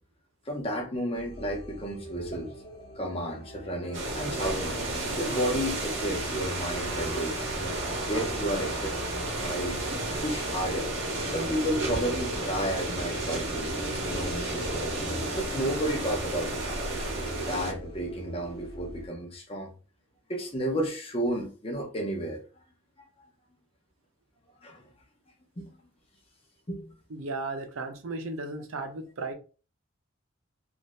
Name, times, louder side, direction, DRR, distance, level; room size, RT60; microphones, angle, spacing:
voice 1, 0.5-2.5 3.0-4.8 5.2-7.7 8.1-8.9 9.2-9.9 10.2-10.9 11.3-15.1 15.3-16.8 17.5-19.7 20.3-22.4 23.2-23.3 24.6-24.8 25.6-25.8 26.7-26.9, equal, 25° left, 0.6 m, -32 dB
sound 1, 1.1-19.1, right 1 dB, 50° left, 1.0 m, -43 dB
sound 2, 3.9-17.7, right 2 dB, 60° right, 0.9 m, -32 dB
voice 2, 27.1-29.3, right 3 dB, 80° right, 0.6 m, -35 dB
2.7 x 2.4 x 3.2 m
head